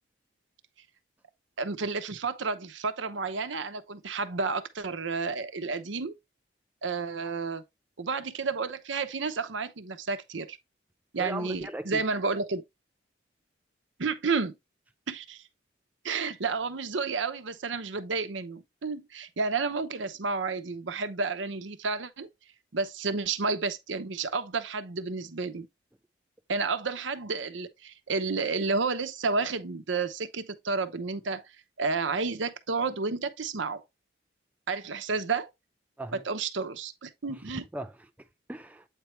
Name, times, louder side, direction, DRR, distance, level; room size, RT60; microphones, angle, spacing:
voice 1, 1.6-6.1 6.8-7.6 8.0-10.6 11.1-12.6 14.0-14.6 15.1-15.4 16.0-22.3 22.7-25.7 26.5-31.5 31.8-33.8 34.7-35.5 36.1-37.6, right 4 dB, 85° right, 0.8 m, -31 dB
voice 2, 11.2-12.0 36.0-36.2 37.3-38.9, right 1 dB, 10° right, 0.3 m, -39 dB
8.3 x 4.6 x 3.1 m
head